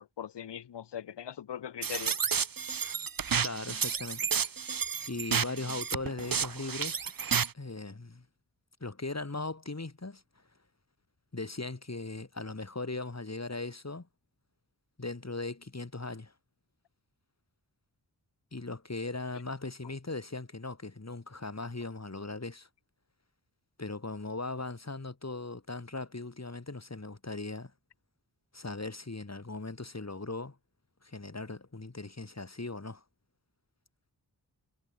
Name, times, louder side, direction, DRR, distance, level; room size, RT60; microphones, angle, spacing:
voice 1, 0.0-2.2, left 9 dB, 75° left, 0.8 m, -40 dB
sound 1, 1.8-7.5, right 6 dB, 55° right, 1.0 m, -31 dB
voice 2, 3.4-4.5 5.1-7.1 7.5-8.3 8.8-10.2 11.3-14.1 15.0-16.3 18.5-22.7 23.8-27.7 28.5-30.6 31.0-33.0, left 3 dB, 40° left, 4.0 m, -39 dB
cardioid pair, 45°, 42 cm